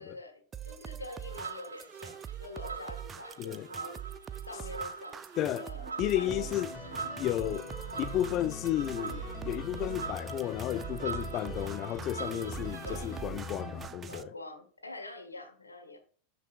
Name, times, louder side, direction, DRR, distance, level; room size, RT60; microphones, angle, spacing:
voice 1, 0.0-4.0 4.4-7.0 11.3-11.7 12.8-13.1 14.1-16.0, left 2 dB, 90° left, 1.4 m, -46 dB
sound 1, 0.5-14.2, right 9 dB, 25° right, 0.4 m, -44 dB
sound 2, 1.3-13.2, right 5 dB, 85° right, 0.6 m, -44 dB
voice 2, 5.4-5.7 6.0-6.7 7.2-7.7 8.0-14.3, left 13 dB, 40° left, 0.3 m, -33 dB
sound 3, 6.3-13.9, left 2 dB, 25° left, 2.2 m, -42 dB
12.0 x 4.8 x 2.4 m
figure-of-eight pair, 90°, 0 cm